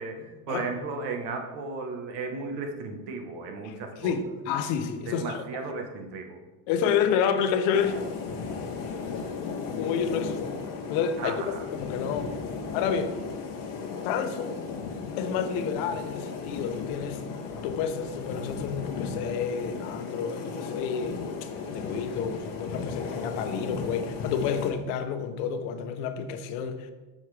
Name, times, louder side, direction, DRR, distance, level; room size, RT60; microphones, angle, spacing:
voice 1, 0.0-4.1 5.1-6.4 11.2-11.6, right 4 dB, 65° right, 1.3 m, -35 dB
voice 2, 3.6-5.4 6.7-8.0 9.8-10.5 10.9-12.4 12.7-13.1 14.0-14.6 15.2-17.2 17.6-26.9, left 7 dB, 80° left, 0.9 m, -29 dB
sound 1, 7.7-24.7, left 5 dB, 45° left, 1.1 m, -35 dB
8.1 x 6.2 x 3.3 m
cardioid pair, 160°, 43 cm